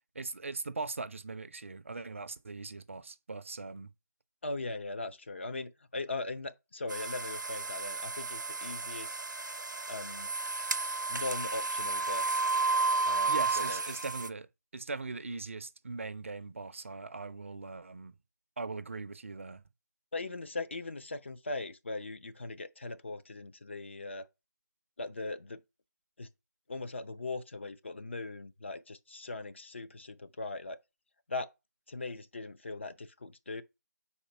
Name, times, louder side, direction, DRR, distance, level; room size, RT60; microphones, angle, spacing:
voice 1, 0.1-3.9 13.3-14.5 14.7-18.1 18.6-19.6, right 3 dB, 45° right, 0.4 m, -40 dB
voice 2, 4.4-9.2 9.9-10.3 11.1-12.4 13.1-13.8 20.1-24.3 25.0-25.6 26.2-26.3 26.7-30.8 31.3-31.5 31.9-33.6, left 3 dB, 40° left, 0.4 m, -39 dB
sound 1, 6.9-14.3, right 3 dB, 85° right, 0.6 m, -32 dB
5.1 x 4.2 x 5.5 m
figure-of-eight pair, 165°, 10 cm